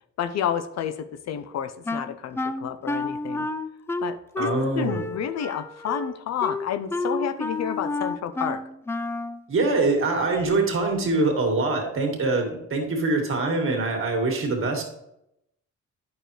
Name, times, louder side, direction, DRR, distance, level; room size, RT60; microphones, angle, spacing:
voice 1, 0.2-3.5 4.0-4.5 4.8-8.6, left 9 dB, 60° left, 12 dB, 0.6 m, -30 dB
Wind instrument woodwind instrument, 1.9-9.4, left 2 dB, 10° left, 0.3 m, -30 dB
voice 2, 4.4-5.0 9.5-14.8, right 3 dB, 45° right, 2 dB, 2.0 m, -24 dB
9.1 x 6.3 x 3.2 m, 0.80 s
cardioid pair, 90°, 30 cm